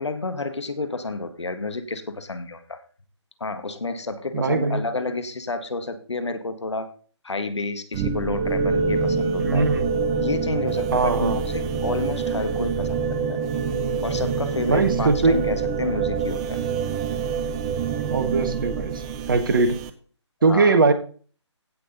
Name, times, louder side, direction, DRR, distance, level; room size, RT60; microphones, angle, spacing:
voice 1, 0.0-2.8 3.4-6.9 7.2-9.7 10.2-13.4 14.0-16.6 20.4-20.8, left 3 dB, 70° left, 9 dB, 1.7 m, -30 dB
voice 2, 4.3-4.8 9.4-9.9 10.9-11.4 14.7-15.3 18.1-19.0 19.3-19.8 20.4-20.9, right 4 dB, 45° right, 8 dB, 1.5 m, -20 dB
sound 1, 7.9-19.9, right 5 dB, 10° right, 0.5 m, -26 dB
16.5 x 6.6 x 4.0 m, 0.41 s
figure-of-eight pair, 150°, 15 cm